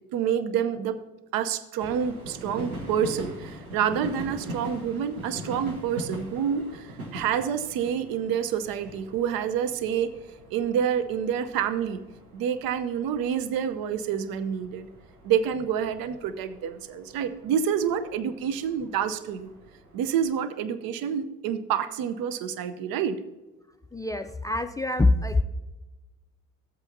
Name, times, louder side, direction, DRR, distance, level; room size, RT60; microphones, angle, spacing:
voice 1, 0.1-1.0 1.3-10.1 10.5-12.0 12.3-14.9 15.2-19.5 19.9-23.2, right 8 dB, 55° right, 11 dB, 0.8 m, -28 dB
sound 1, 1.8-20.3, right 1 dB, 90° right, 1.2 m, -42 dB
voice 2, 23.9-25.4, left 2 dB, 10° left, 10 dB, 0.4 m, -24 dB
14.0 x 8.1 x 2.7 m, 1.1 s
figure-of-eight pair, 55°, 42 cm